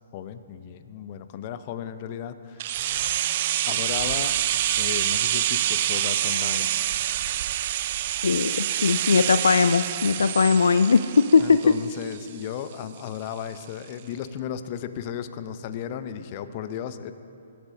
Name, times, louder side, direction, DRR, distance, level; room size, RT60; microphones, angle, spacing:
voice 1, 0.1-2.6 3.7-4.4 4.8-6.8 11.4-17.1, left 9 dB, 35° left, 11 dB, 0.7 m, -35 dB
sound 1, 2.6-12.4 12.7-12.8, right 12 dB, 45° right, 0.4 m, -26 dB
voice 2, 8.2-11.6, left 5 dB, 70° left, 12 dB, 0.3 m, -20 dB
24.0 x 12.0 x 2.7 m, 2.7 s
figure-of-eight pair, 125°, 0 cm